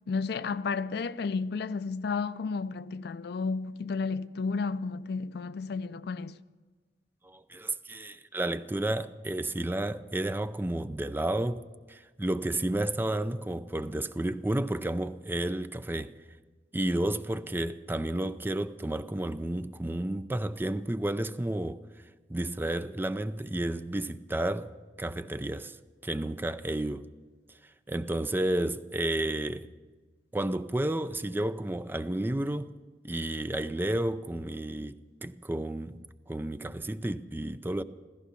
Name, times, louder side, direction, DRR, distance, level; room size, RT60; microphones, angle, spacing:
voice 1, 0.1-6.4, left 4 dB, 65° left, 0.4 m, -32 dB
voice 2, 7.2-11.6 11.9-16.1 16.7-21.8 22.3-24.7 25.0-25.8 26.0-27.1 27.9-29.7 30.3-32.7 33.0-37.8, right 1 dB, 10° right, 0.4 m, -31 dB
15.5 x 14.5 x 5.7 m
head